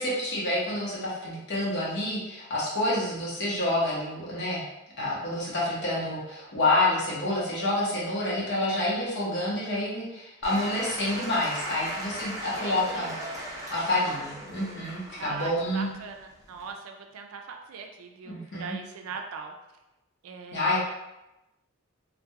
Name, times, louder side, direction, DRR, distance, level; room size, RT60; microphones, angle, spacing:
voice 1, 0.0-4.6 5.0-13.1 13.7-15.9 18.3-18.8 20.5-20.8, left 1 dB, 55° left, -6 dB, 0.8 m, -28 dB
Applause / Crowd, 10.4-16.7, right 1 dB, 15° right, 0.6 m, -38 dB
voice 2, 12.4-13.1 15.2-19.5 20.2-20.8, right 5 dB, 75° right, 4 dB, 0.3 m, -40 dB
2.2 x 2.2 x 2.8 m, 0.95 s
head